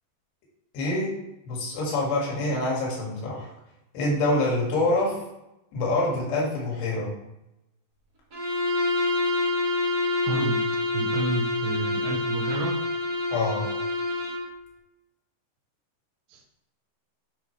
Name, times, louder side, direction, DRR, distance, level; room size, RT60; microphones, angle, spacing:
voice 1, 0.7-1.1 1.5-3.5 3.9-5.2 5.7-7.1 13.3-13.7, left 2 dB, 80° left, -4 dB, 4.4 m, -26 dB
Bowed string instrument, 8.3-14.5, left 2 dB, 65° right, 0.8 m, -27 dB
voice 2, 10.2-10.6 10.9-12.8 16.3-16.4, right 3 dB, 85° right, 1 dB, 3.2 m, -30 dB
11.5 x 5.8 x 3.3 m, 0.92 s
omnidirectional pair, 4.9 m